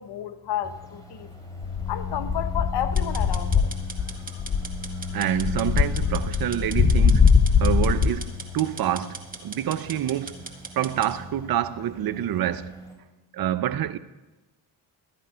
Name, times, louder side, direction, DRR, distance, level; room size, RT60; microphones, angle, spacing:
voice 1, 0.0-1.3 1.9-3.7, left 10 dB, 55° left, 1.1 m, -31 dB
sound 1, 0.6-12.9, left 5 dB, 5° left, 3.8 m, -38 dB
sound 2, 1.6-4.1 4.4-8.3, left 5 dB, 25° left, 0.9 m, -21 dB
sound 3, 3.0-11.1, right 3 dB, 15° right, 2.0 m, -40 dB
voice 2, 5.1-7.3 7.6-10.4 10.8-12.7 13.3-14.0, right 11 dB, 45° right, 0.7 m, -27 dB
13.0 x 9.2 x 5.0 m
supercardioid pair, 55°, 50 cm